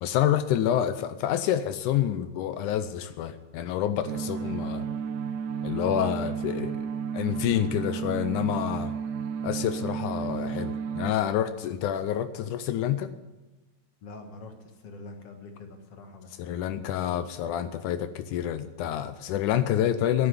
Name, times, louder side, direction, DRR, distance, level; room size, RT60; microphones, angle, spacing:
voice 1, 0.0-4.9 5.6-6.9 7.1-8.9 9.4-13.1 16.4-20.3, left 10 dB, 80° left, 11 dB, 2.1 m, -28 dB
sound 1, 4.1-11.1, right 7 dB, 85° right, 1.5 m, -32 dB
voice 2, 14.0-16.9, left 3 dB, 55° left, 4 dB, 2.3 m, -45 dB
11.0 x 10.5 x 9.6 m, 1.1 s
omnidirectional pair, 3.7 m